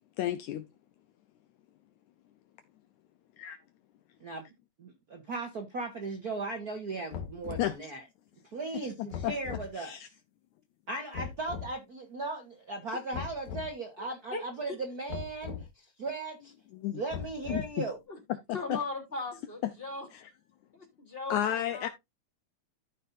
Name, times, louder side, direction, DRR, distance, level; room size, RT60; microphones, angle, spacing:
voice 1, 0.2-0.6 3.4-3.6 7.6-7.7 9.2-9.3 9.8-10.1 16.7-17.0 17.5-17.9 18.5-18.8 20.1-20.2 21.3-21.9, left 11 dB, 75° left, 1.9 m, -31 dB
voice 2, 4.8-8.0 8.4-10.0 10.9-16.5 16.9-18.0, right 3 dB, 85° right, 0.8 m, -37 dB
sound 1, 7.1-7.8 9.1-9.7 11.1-11.7 13.1-13.7 15.1-15.7 17.1-17.8, left 7 dB, 60° left, 2.5 m, -39 dB
voice 3, 18.5-20.1 20.7-21.4 21.7-21.9, left 3 dB, 15° left, 3.5 m, -37 dB
14.0 x 5.5 x 2.6 m
omnidirectional pair, 3.9 m